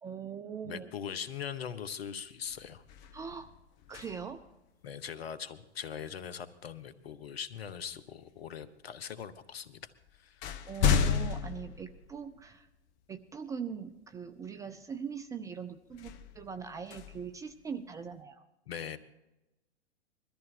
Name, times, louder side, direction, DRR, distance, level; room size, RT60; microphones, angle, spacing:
voice 1, 0.0-0.9 3.1-3.5 3.9-4.4 10.7-12.7 13.1-18.4, right 6 dB, 10° right, 8 dB, 0.5 m, -41 dB
voice 2, 0.6-2.8 4.8-10.4 18.7-19.0, left 8 dB, 65° left, 13 dB, 1.3 m, -41 dB
sound 1, 1.8-2.1 2.5-4.5 6.7-6.9 7.7-8.4 9.3-9.4 9.8-12.7 13.2-13.3 15.9-18.1, left 6 dB, 40° left, 1.2 m, -34 dB
21.5 x 13.5 x 4.6 m, 0.95 s
figure-of-eight pair, 105°, 33 cm